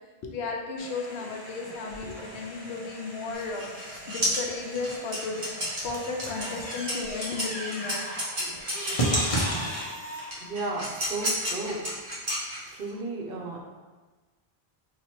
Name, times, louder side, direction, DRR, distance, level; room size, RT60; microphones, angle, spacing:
voice 1, 0.2-3.7 4.1-8.0 8.4-8.5, left 4 dB, 85° left, 1 dB, 0.9 m, -34 dB
sound 1, 0.8-10.3, equal, 35° left, 0.7 m, -34 dB
sound 2, 3.3-9.6 10.3-12.9, equal, 40° right, 1.0 m, -32 dB
voice 2, 10.4-12.3 12.7-13.6, right 2 dB, 65° right, -1 dB, 0.8 m, -34 dB
2.9 x 2.4 x 4.3 m, 1.3 s
omnidirectional pair, 1.1 m